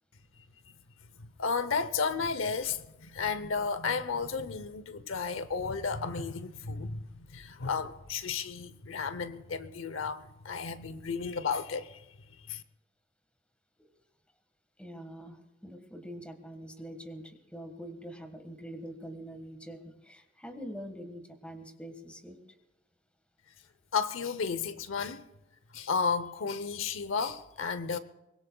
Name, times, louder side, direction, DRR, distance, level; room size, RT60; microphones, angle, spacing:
voice 1, 1.2-7.0 7.3-12.0 12.5-12.6 23.9-25.3 25.7-28.0, left 5 dB, 80° left, 0.8 m, -33 dB
voice 2, 14.8-22.4, equal, 5° left, 1.6 m, -44 dB
23.5 x 21.0 x 2.3 m
head